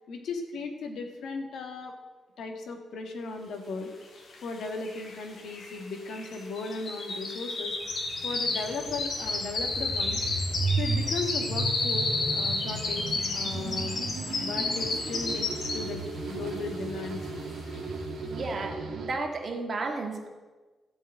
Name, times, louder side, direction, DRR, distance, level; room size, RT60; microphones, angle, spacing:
voice 1, 0.1-1.9 2.4-3.9 4.4-7.8 8.2-10.2 10.8-14.0 14.4-17.2, left 3 dB, 75° left, 4 dB, 1.8 m, -36 dB
sound 1, 4.3-4.4 4.6-16.1 16.5-16.8 17.2-17.3, left 3 dB, 50° left, 2.0 m, -32 dB
sound 2, 7.8-19.1, right 3 dB, 60° right, 1.9 m, -35 dB
voice 2, 18.3-20.3, right 3 dB, 40° right, 4 dB, 1.7 m, -33 dB
14.0 x 5.5 x 9.1 m, 1.3 s
wide cardioid pair, 150°, 0 cm